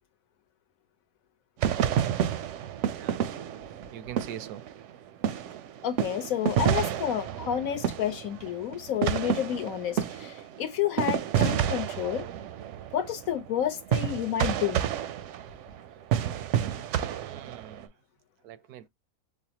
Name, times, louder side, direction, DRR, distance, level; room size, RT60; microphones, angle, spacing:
sound 1, 1.6-5.0 5.2-17.8, right 9 dB, 70° right, 0.7 m, -29 dB
voice 1, 2.8-3.2 3.9-4.6 17.2-17.9 18.4-18.9, right 11 dB, 85° right, 1.1 m, -43 dB
voice 2, 5.8-12.3 12.9-14.8, left 10 dB, 70° left, 1.2 m, -30 dB
5.5 x 2.0 x 2.8 m
omnidirectional pair, 1.6 m